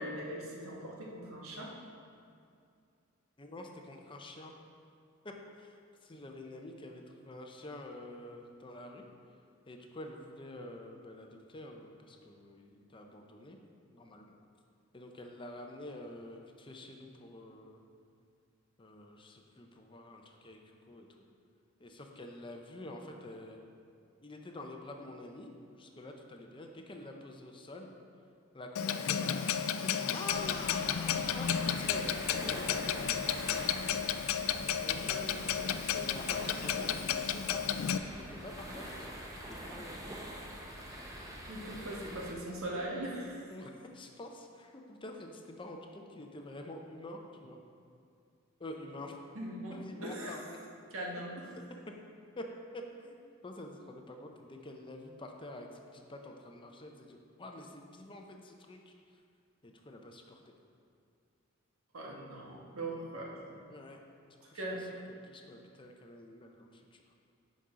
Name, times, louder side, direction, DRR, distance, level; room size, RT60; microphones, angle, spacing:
voice 1, 0.0-1.7 35.0-35.6 41.5-43.5 49.3-50.5 50.9-51.4 61.9-63.4 64.5-64.8, right 1 dB, 85° right, -3 dB, 1.5 m, -40 dB
voice 2, 3.4-4.5 5.2-9.0 9.7-13.6 13.9-14.3 14.9-17.8 18.8-21.1 21.8-23.6 24.2-27.9 28.5-31.5 31.9-35.2 35.9-40.1 43.5-47.6 48.6-49.2 49.7-50.6 51.5-51.6 52.4-52.5 52.7-53.2 53.4-58.9 59.6-60.5 63.7-64.0 64.4-64.6 65.2-67.0, left 1 dB, 25° left, 3 dB, 0.6 m, -48 dB
Clock, 28.8-38.0, left 8 dB, 75° left, 0.4 m, -33 dB
sound 1, 30.3-42.3, equal, 15° right, 0.8 m, -45 dB
10.0 x 5.4 x 3.8 m, 2.4 s
head